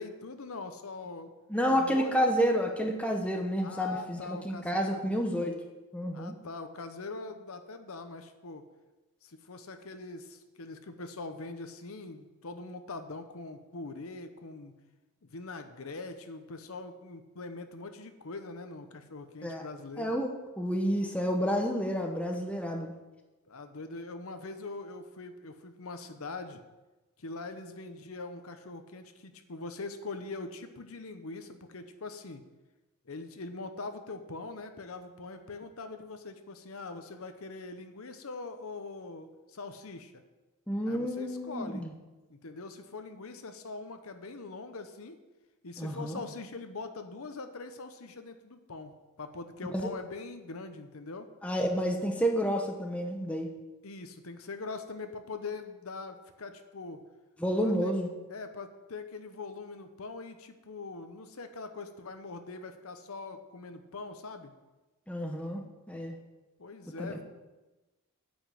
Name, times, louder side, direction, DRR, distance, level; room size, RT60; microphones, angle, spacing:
voice 1, 0.0-1.3 1.7-2.3 3.6-5.1 6.1-8.7 9.2-14.7 15.2-20.1 23.5-26.6 27.2-32.4 33.1-40.2 40.9-41.9 42.3-45.2 45.6-51.3 53.8-57.0 57.6-57.9 58.3-64.5 66.6-67.2, left 3 dB, 70° left, 8 dB, 0.8 m, -42 dB
voice 2, 1.5-5.6 5.9-6.3 19.4-19.6 20.0-22.9 40.7-41.9 45.8-46.2 49.7-49.9 51.4-53.5 57.4-58.1 65.1-65.6 65.9-66.1 67.0-67.2, equal, 5° left, 2 dB, 0.9 m, -30 dB
9.1 x 5.3 x 7.5 m, 1.1 s
head